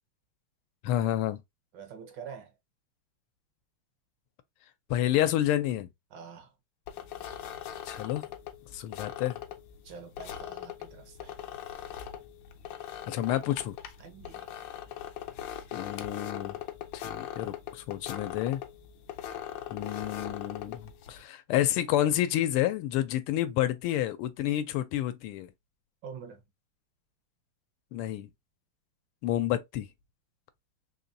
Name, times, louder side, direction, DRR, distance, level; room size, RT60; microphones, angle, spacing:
voice 1, 0.8-1.4 4.9-5.9 7.9-8.2 8.7-9.4 13.1-13.8 15.7-16.6 16.9-18.6 19.7-25.5 27.9-28.3 29.2-29.9, left 12 dB, 85° left, 1.5 m, -29 dB
voice 2, 1.7-2.5 6.1-6.5 9.8-11.4 14.0-14.5 26.0-26.4, right 6 dB, 65° right, 1.3 m, -45 dB
sound 1, 6.9-21.2, left 10 dB, 70° left, 1.2 m, -41 dB
4.1 x 3.0 x 2.6 m
omnidirectional pair, 2.4 m